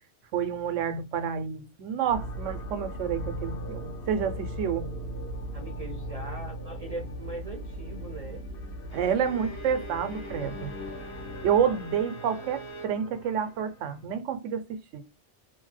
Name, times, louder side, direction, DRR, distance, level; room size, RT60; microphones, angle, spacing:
voice 1, 0.3-4.9 8.9-10.7 11.4-15.0, right 8 dB, 90° right, 0.9 m, -29 dB
sound 1, 2.1-14.0, equal, 55° left, 0.8 m, -38 dB
voice 2, 5.5-8.4 11.6-11.8, right 2 dB, 45° right, 0.5 m, -40 dB
Bowed string instrument, 8.9-13.0, right 4 dB, 35° left, 0.5 m, -44 dB
2.6 x 2.1 x 3.2 m
omnidirectional pair, 1.2 m